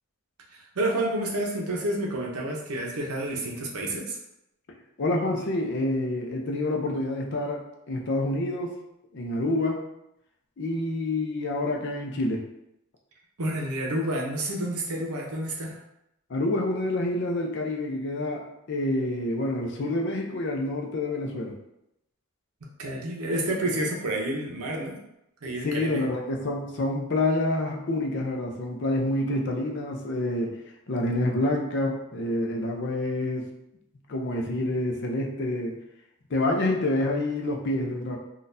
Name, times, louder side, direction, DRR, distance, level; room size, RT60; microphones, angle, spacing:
voice 1, 0.5-4.2 13.4-15.7 22.8-25.0 25.4-26.0, right 1 dB, 80° right, -1 dB, 0.8 m, -29 dB
voice 2, 5.0-8.7 9.1-9.8 10.6-12.5 16.3-21.5 25.6-30.5 30.9-33.5 34.1-35.8 36.3-38.2, left 1 dB, 50° left, 1 dB, 0.5 m, -27 dB
3.9 x 2.4 x 2.6 m, 0.83 s
head